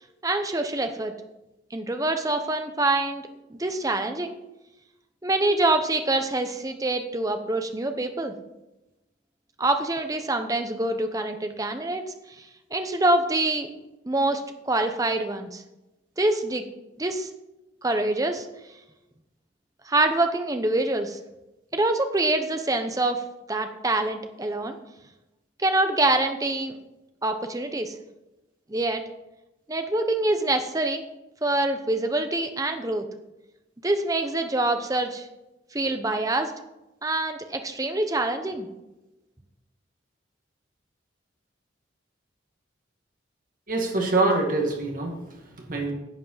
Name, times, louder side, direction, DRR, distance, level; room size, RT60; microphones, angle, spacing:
voice 1, 0.2-1.1 1.7-3.2 3.5-4.4 5.2-8.3 9.6-12.0 12.7-13.7 14.0-15.6 16.2-16.6 17.0-17.3 17.8-18.5 19.9-21.2 21.7-23.2 23.5-24.8 25.6-26.8 27.2-27.9 28.7-29.0 29.7-31.0 31.4-33.1 33.8-35.3 35.7-36.5 37.0-38.7, right 2 dB, 20° right, 7 dB, 0.8 m, -25 dB
voice 2, 43.7-45.9, right 2 dB, 45° right, 1 dB, 2.2 m, -25 dB
10.5 x 7.6 x 5.7 m, 0.97 s
head